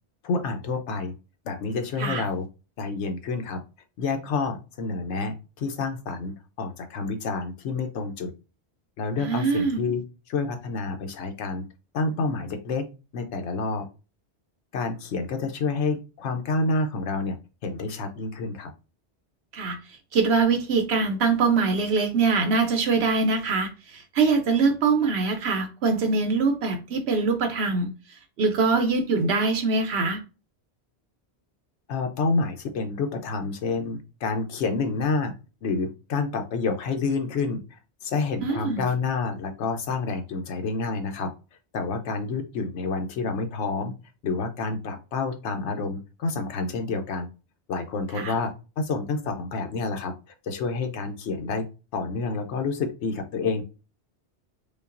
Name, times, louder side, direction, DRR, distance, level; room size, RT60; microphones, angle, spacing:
voice 1, 0.2-1.1 1.4-2.5 2.8-3.6 4.0-8.3 9.0-10.0 10.3-11.6 11.9-12.8 13.1-13.9 14.7-17.4 17.6-18.7 31.9-35.3 35.6-41.3 41.7-43.9 44.2-47.3 47.7-48.5 48.8-50.1 50.4-51.6 51.9-53.6, left 4 dB, 90° left, 6 dB, 1.0 m, -28 dB
voice 2, 9.2-9.8 19.5-30.2 38.4-38.8 48.1-48.4, right 4 dB, 70° right, 6 dB, 0.8 m, -23 dB
5.2 x 2.3 x 2.4 m, 0.31 s
omnidirectional pair, 1.1 m